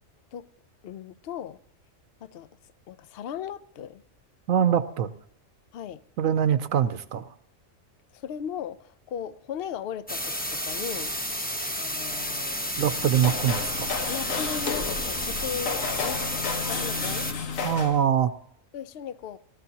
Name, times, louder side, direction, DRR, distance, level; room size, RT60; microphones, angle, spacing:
voice 1, 0.8-1.6 2.2-2.5 2.9-4.0 5.7-6.0 8.1-11.2 11.8-12.8 14.1-17.3 18.7-19.4, left 8 dB, 60° left, 0.7 m, -37 dB
voice 2, 4.5-5.1 6.2-7.3 12.8-14.0 17.6-18.3, right 9 dB, 80° right, 1.1 m, -23 dB
sound 1, 10.1-17.3, equal, 10° left, 0.9 m, -31 dB
sound 2, 12.7-18.0, left 5 dB, 75° left, 1.4 m, -32 dB
19.0 x 13.5 x 2.8 m
omnidirectional pair, 1.4 m